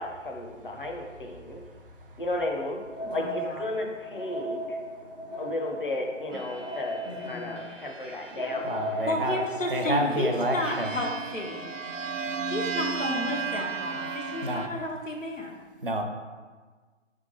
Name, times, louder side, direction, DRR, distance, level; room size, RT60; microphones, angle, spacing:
voice 1, 0.0-1.7 2.2-2.8 3.1-4.8 5.4-8.8, left 2 dB, 45° left, 1 dB, 0.9 m, -34 dB
voice 2, 1.7-2.2 8.6-9.4 9.7-10.9 12.2-12.4 14.4-14.7 15.8-16.0, right 1 dB, 45° right, 3 dB, 0.8 m, -29 dB
sound 1, 2.7-9.8, equal, 20° left, 0.6 m, -37 dB
voice 3, 3.0-3.6 7.0-8.5 9.1-11.7 11.9-12.1 12.4-15.6, left 1 dB, 80° left, -1 dB, 1.4 m, -33 dB
sound 2, 6.3-9.1 9.9-14.7, right 5 dB, 80° right, 0.6 m, -35 dB
4.7 x 3.6 x 5.4 m, 1.4 s
figure-of-eight pair, 150°, 38 cm